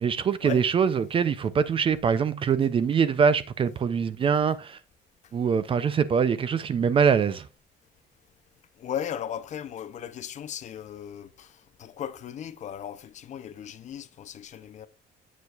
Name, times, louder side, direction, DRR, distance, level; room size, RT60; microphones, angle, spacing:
voice 1, 0.0-4.8 5.3-7.5, right 6 dB, 30° right, 0.4 m, -23 dB
voice 2, 8.8-14.9, left 9 dB, 40° left, 0.5 m, -37 dB
8.0 x 7.0 x 2.3 m
cardioid pair, 170°, 18 cm